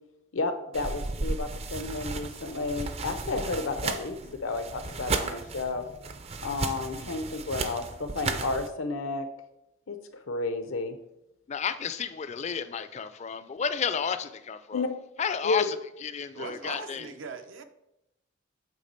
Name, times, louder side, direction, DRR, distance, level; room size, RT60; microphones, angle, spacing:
voice 1, 0.3-5.9 6.4-9.3 9.9-11.0 14.7-14.9 15.4-15.7, left 3 dB, 85° left, 0.7 m, -32 dB
sound 1, 0.7-8.7, right 3 dB, 30° right, 0.4 m, -34 dB
voice 2, 11.5-14.9 15.2-15.8 16.0-17.1, left 6 dB, 35° left, 0.4 m, -32 dB
voice 3, 16.3-17.6, right 4 dB, 75° right, 0.6 m, -40 dB
8.3 x 3.3 x 4.3 m
head